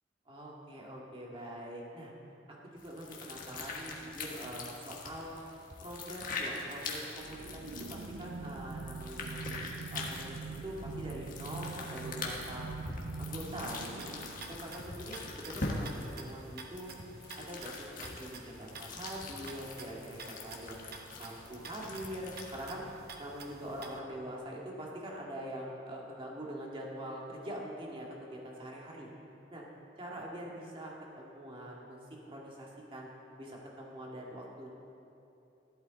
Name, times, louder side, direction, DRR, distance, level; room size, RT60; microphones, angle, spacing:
voice 1, 0.3-2.1 2.5-5.5 5.8-12.7 13.2-14.2 14.5-16.9 17.4-29.1 29.5-29.6 30.0-33.1 33.4-34.7, right 1 dB, 30° right, -3 dB, 2.1 m, -44 dB
sound 1, 2.8-22.7, left 3 dB, 50° left, 1.4 m, -43 dB
sound 2, 7.2-15.4, right 4 dB, 85° right, 0.5 m, -44 dB
sound 3, 13.8-24.0, right 4 dB, 60° right, 1.0 m, -50 dB
14.0 x 11.5 x 4.1 m, 2.8 s
head